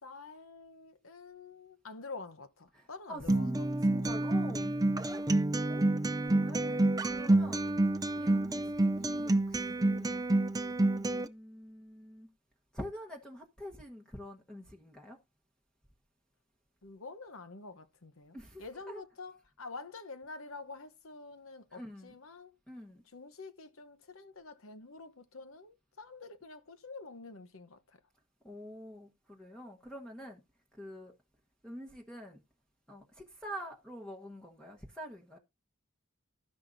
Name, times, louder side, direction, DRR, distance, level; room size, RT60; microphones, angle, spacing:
voice 1, 0.0-4.2 4.4-4.7 16.8-22.5 23.1-28.0, left 3 dB, 70° left, 1.0 m, -48 dB
voice 2, 2.7-3.6 3.8-5.3 5.7-5.8 6.3-7.6 8.2-10.2 10.8-12.3 12.7-15.2 18.3-19.0 21.7-22.1 22.7-23.0 28.4-30.4 30.8-31.1 31.6-32.4 32.9-35.4, equal, 5° left, 1.1 m, -46 dB
Acoustic guitar, 3.3-11.3, right 2 dB, 15° right, 0.5 m, -28 dB
12.5 x 10.5 x 2.7 m
head